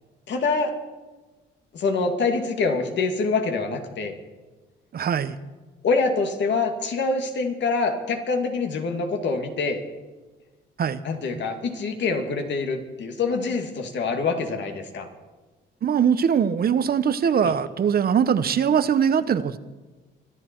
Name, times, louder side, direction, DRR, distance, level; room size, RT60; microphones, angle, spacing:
voice 1, 0.3-0.7 1.7-4.1 5.8-9.8 11.0-15.1 17.4-17.5, left 4 dB, 65° left, 5 dB, 2.3 m, -25 dB
voice 2, 4.9-5.4 10.8-11.0 15.8-19.6, right 7 dB, 50° right, 13 dB, 0.9 m, -21 dB
24.5 x 11.0 x 4.6 m, 1.3 s
cardioid pair, 90°, 20 cm